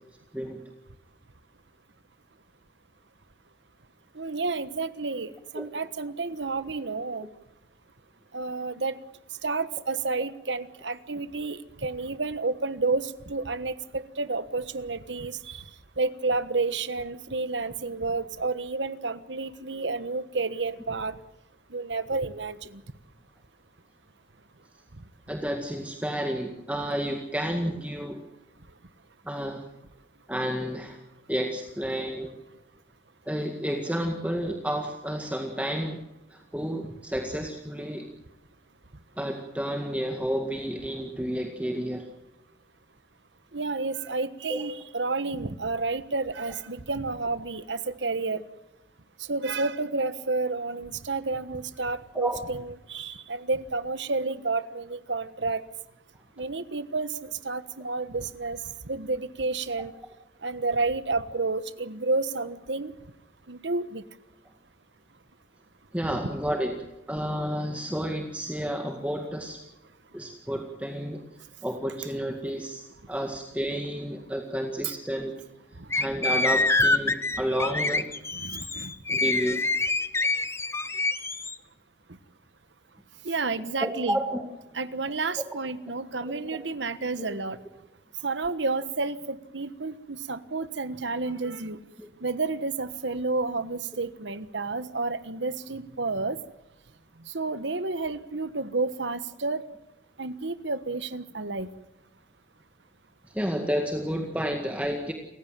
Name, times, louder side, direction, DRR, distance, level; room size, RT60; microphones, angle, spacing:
voice 1, 4.1-7.3 8.3-9.0 9.4-15.6 16.0-21.2 21.7-22.8 43.5-48.4 49.3-55.6 56.4-58.6 58.9-59.9 60.4-62.9 63.5-64.0 74.8-74.9 75.8-75.9 78.3-78.9 83.2-84.2 84.7-87.6 88.2-91.8 92.2-96.4 97.3-99.6 100.2-101.7, right 3 dB, 85° right, 13 dB, 1.4 m, -30 dB
voice 2, 25.3-28.2 29.3-29.6 30.3-31.0 31.3-32.3 33.3-36.0 36.3-38.1 39.2-42.1 44.5-44.6 52.1-52.4 65.9-66.7 67.1-69.6 70.1-71.2 71.6-75.3 75.9-78.1 79.1-79.6 83.8-84.5 86.2-86.6 87.2-87.3 92.0-92.1 103.3-105.1, equal, 10° right, 3 dB, 1.9 m, -31 dB
sound 1, 75.9-81.5, left 3 dB, 15° left, 0.9 m, -26 dB
28.5 x 15.5 x 7.5 m, 0.93 s
head